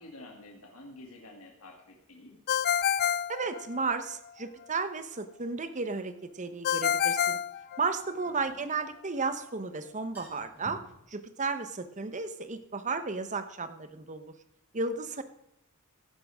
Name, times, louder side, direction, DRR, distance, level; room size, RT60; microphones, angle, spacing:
voice 1, 0.0-2.4 8.2-8.7, left 1 dB, 75° left, 0 dB, 2.5 m, -50 dB
Ringtone, 2.5-4.1 6.6-8.3, left 9 dB, 45° left, 0.4 m, -28 dB
voice 2, 3.3-7.4 7.8-10.8 11.1-14.3 14.7-15.2, right 4 dB, 35° right, 10 dB, 1.0 m, -33 dB
sound 1, 5.6-5.7 8.0-9.3 9.6-9.7 10.0-11.0, equal, 10° right, 4.7 m, -51 dB
15.0 x 10.5 x 3.6 m, 0.77 s
head